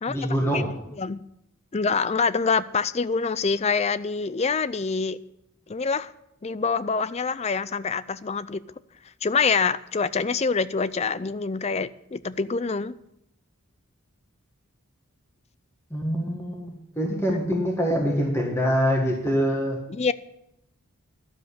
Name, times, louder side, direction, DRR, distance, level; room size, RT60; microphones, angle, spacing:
voice 1, 0.1-0.7 15.9-19.8, equal, 10° left, 1.6 m, -25 dB
voice 2, 1.7-5.2 5.7-6.1 6.4-8.6 9.2-12.9 19.9-20.1, left 5 dB, 30° left, 0.4 m, -25 dB
12.0 x 7.7 x 8.3 m
head